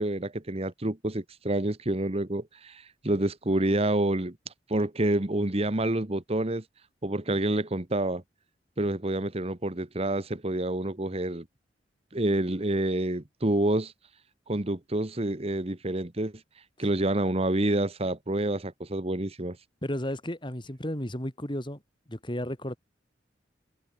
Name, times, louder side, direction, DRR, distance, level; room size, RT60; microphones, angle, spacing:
voice 1, 0.0-4.3 4.7-6.6 7.0-8.2 8.8-11.4 12.1-13.9 14.5-16.3 16.8-19.6, right 1 dB, 35° right, 1.4 m, -28 dB
voice 2, 19.8-21.8 22.1-22.8, left 1 dB, 25° left, 4.3 m, -33 dB
head